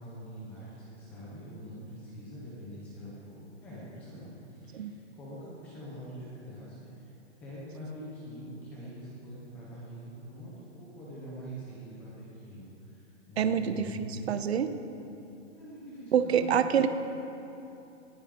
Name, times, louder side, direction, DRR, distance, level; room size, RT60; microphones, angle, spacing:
voice 1, 0.0-7.1 7.4-14.4 15.5-16.9, equal, 5° left, -7 dB, 0.6 m, -44 dB
voice 2, 13.4-13.9 14.3-14.7 16.1-16.9, right 8 dB, 60° right, 10 dB, 0.8 m, -26 dB
19.0 x 13.5 x 3.7 m, 2.8 s
hypercardioid pair, 175°, 36 cm